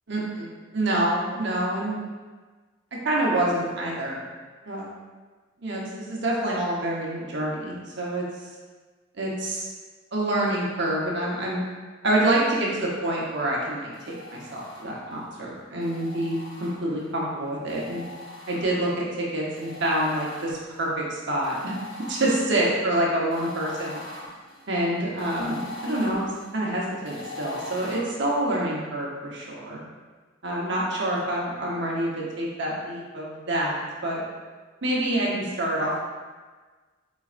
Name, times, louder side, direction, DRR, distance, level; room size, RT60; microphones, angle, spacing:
voice 1, 0.1-1.9 3.0-4.2 4.6-4.8 5.6-8.2 9.2-9.7 10.1-11.6 12.0-18.0 18.5-21.7 22.1-24.0 24.7-29.8 30.4-34.2 34.8-36.0, right 1 dB, 60° right, -4 dB, 1.0 m, -27 dB
sound 1, 13.9-15.2 15.8-17.1 17.7-19.0 19.6-20.9 21.4-28.0, left 3 dB, 65° left, 1.1 m, -42 dB
4.6 x 4.1 x 2.5 m, 1.4 s
head